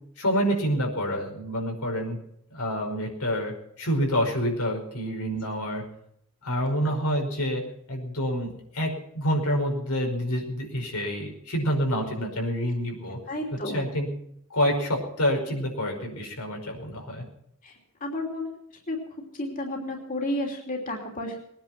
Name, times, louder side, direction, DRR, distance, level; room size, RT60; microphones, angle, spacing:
voice 1, 0.2-2.2 2.5-5.8 6.4-7.6 7.9-13.2 13.7-14.1 14.5-17.3, equal, 90° left, 2 dB, 5.2 m, -27 dB
voice 2, 13.3-13.9 17.6-17.7 18.0-18.5 18.9-19.0 19.3-21.4, left 1 dB, 40° left, 1 dB, 3.1 m, -31 dB
21.0 x 10.0 x 6.0 m, 0.73 s
head